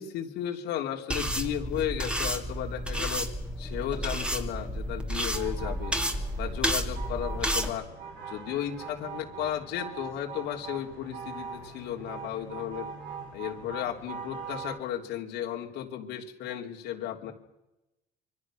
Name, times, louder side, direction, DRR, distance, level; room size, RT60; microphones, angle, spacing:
voice 1, 0.0-3.3 3.6-6.0 6.4-7.9 8.3-12.9 13.3-17.3, left 11 dB, 90° left, 2 dB, 3.4 m, -34 dB
sound 1, 1.1-7.7, equal, 5° right, 2.5 m, -31 dB
sound 2, 5.3-14.8, right 6 dB, 75° right, 5.8 m, -42 dB
26.5 x 24.5 x 6.5 m, 0.96 s
cardioid pair, 110°, 17 cm